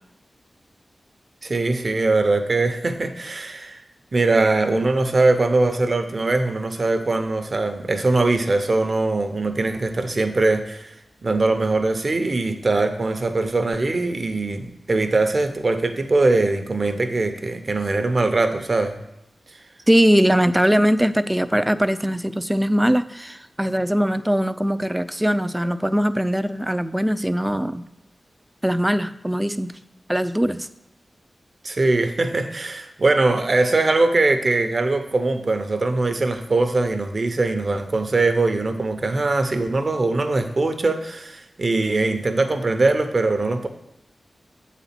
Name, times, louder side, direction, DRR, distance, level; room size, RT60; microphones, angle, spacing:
voice 1, 1.4-3.8 4.1-11.0 11.2-19.0 31.6-43.7, right 2 dB, 45° right, 7 dB, 0.8 m, -21 dB
voice 2, 19.9-27.8 28.6-29.7 30.1-30.7, equal, 10° right, 12 dB, 0.4 m, -21 dB
7.9 x 4.1 x 5.8 m, 0.90 s
wide cardioid pair, 85°, 0 cm